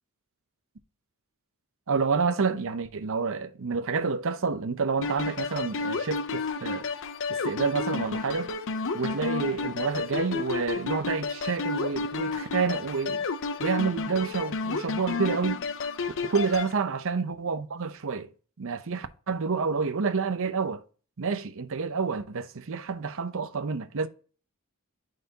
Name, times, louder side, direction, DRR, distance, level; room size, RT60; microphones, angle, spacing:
voice 1, 1.9-6.9 7.3-8.5 8.9-13.3 13.6-15.6 16.2-18.3 18.6-20.8 21.2-24.1, right 5 dB, 65° right, 0.7 m, -29 dB
sound 1, 5.0-16.7, left 4 dB, 60° left, 0.7 m, -31 dB
8.9 x 4.1 x 2.8 m
head